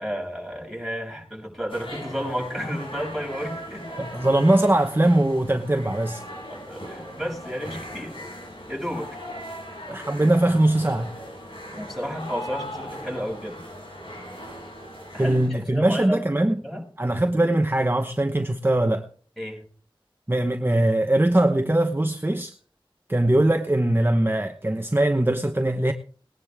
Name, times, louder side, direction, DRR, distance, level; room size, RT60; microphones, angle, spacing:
voice 1, 0.0-3.9 6.5-8.2 8.7-9.2 11.7-13.6 15.1-16.2 16.6-16.8 19.4-19.6, equal, ahead, 6.9 m, -32 dB
sound 1, 1.7-15.5, equal, 70° left, 7.5 m, -38 dB
voice 2, 4.0-6.2 9.9-11.1 15.2-16.6 17.0-19.1 20.3-22.5 23.1-25.9, right 1 dB, 25° right, 1.0 m, -21 dB
20.0 x 10.5 x 3.6 m
wide cardioid pair, 45°, 9 cm